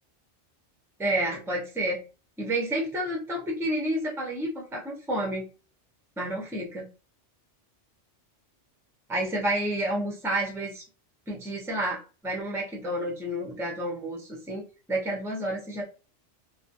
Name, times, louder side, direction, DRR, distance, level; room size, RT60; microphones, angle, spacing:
voice 1, 1.0-2.0 2.4-5.4 6.2-6.9 9.1-10.8 11.3-15.8, right 1 dB, 5° right, -1 dB, 0.4 m, -30 dB
2.4 x 2.2 x 2.6 m, 0.34 s
omnidirectional pair, 1.2 m